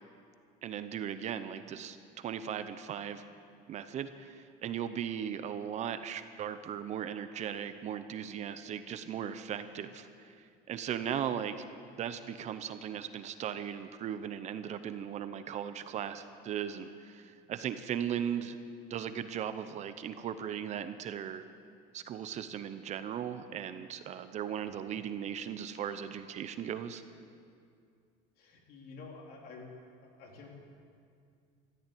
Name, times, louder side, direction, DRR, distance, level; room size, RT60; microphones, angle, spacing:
voice 1, 0.6-3.2 3.7-11.6 12.0-18.6 18.9-21.4 21.9-27.0, right 9 dB, 40° right, 11 dB, 0.8 m, -38 dB
voice 2, 28.4-29.7 30.0-30.5, left 4 dB, 60° left, 0 dB, 3.3 m, -49 dB
14.0 x 11.5 x 8.5 m, 2.3 s
cardioid pair, 145°, 18 cm